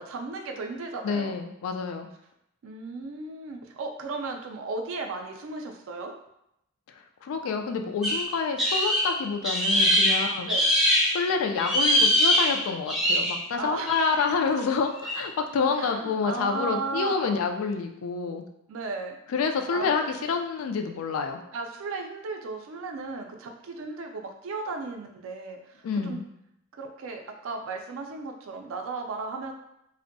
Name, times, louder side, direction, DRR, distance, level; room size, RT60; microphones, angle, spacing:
voice 1, 0.0-1.3 2.6-6.1 10.5-10.6 13.6-14.0 15.7-17.4 18.7-19.2 19.7-19.9 21.5-26.2 26.8-29.5, right 3 dB, 65° right, 3 dB, 0.4 m, -35 dB
voice 2, 1.0-2.1 7.2-10.5 11.1-18.4 19.3-21.4 25.8-26.3, left 5 dB, 75° left, 5 dB, 0.3 m, -28 dB
sound 1, 8.0-11.2 11.6-13.4 13.9-14.2 15.0-15.2, equal, ahead, 0.4 m, -23 dB
2.5 x 2.1 x 2.5 m, 0.80 s
head